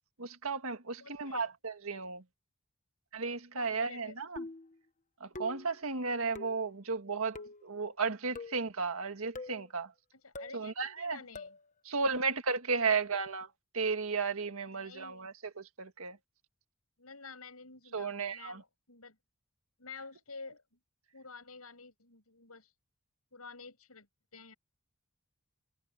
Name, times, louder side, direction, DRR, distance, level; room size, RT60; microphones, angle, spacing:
voice 1, 0.2-2.2 3.1-4.4 5.2-7.4 7.6-9.9 10.5-11.2 11.9-13.5 13.7-16.2 17.9-18.6, right 4 dB, 70° right, 1.9 m, -34 dB
voice 2, 1.0-1.5 3.5-4.2 10.1-11.6 14.7-15.3 17.0-19.2 19.8-20.8 21.1-22.7 23.3-24.1 24.3-24.5, left 4 dB, 85° left, 7.5 m, -50 dB
sound 1, 4.4-4.8 5.3-5.7 6.3-6.7 7.3-7.7 8.4-8.7 9.3-9.6 10.3-10.6 11.3-11.6, left 2 dB, 35° left, 1.1 m, -44 dB
head